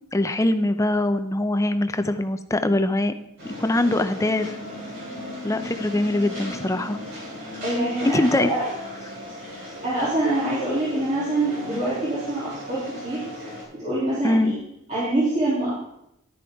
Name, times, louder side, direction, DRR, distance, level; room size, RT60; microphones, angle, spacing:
voice 1, 0.1-3.1 3.6-4.6 5.4-7.0 8.0-8.5 14.2-14.5, left 1 dB, 15° left, 9 dB, 0.5 m, -22 dB
sound 1, 3.4-13.6, equal, 55° right, 3.9 m, -37 dB
voice 2, 7.6-8.6 9.8-13.2 13.7-14.5 14.9-15.7, right 1 dB, 35° right, -10 dB, 3.0 m, -25 dB
11.0 x 9.8 x 3.5 m, 0.80 s
head